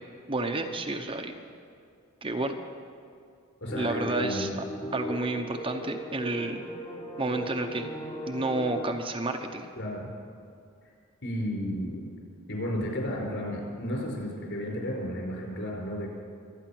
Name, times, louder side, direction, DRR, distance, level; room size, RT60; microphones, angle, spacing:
voice 1, 0.3-1.4 2.2-2.6 3.8-4.6 4.9-6.6 7.2-7.9 8.3-9.7, right 2 dB, 25° right, 4 dB, 0.8 m, -30 dB
voice 2, 3.6-4.5 9.8-10.1 11.2-12.0 12.5-16.1, equal, 60° left, -1 dB, 5.4 m, -33 dB
sound 1, 3.7-9.0, equal, 20° left, 1.1 m, -37 dB
25.0 x 9.5 x 6.1 m, 2.4 s
head